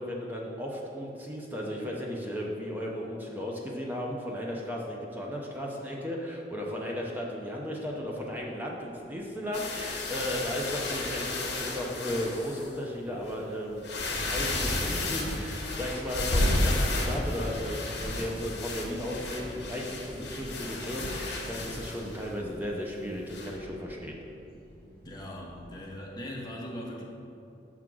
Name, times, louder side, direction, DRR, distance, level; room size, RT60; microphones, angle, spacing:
voice 1, 0.0-24.2, equal, 10° right, -2 dB, 0.6 m, -35 dB
sound 1, 7.0-7.1 7.8-8.2 8.4-12.8 13.0-13.1 14.0-25.9, equal, 50° right, 1.3 m, -42 dB
sound 2, 9.5-12.7 13.3-13.4 13.8-22.3 23.3-23.5, left 2 dB, 70° left, 1.0 m, -32 dB
voice 2, 25.0-27.0, equal, 20° left, -3 dB, 0.9 m, -40 dB
5.8 x 3.7 x 6.0 m, 2.8 s
head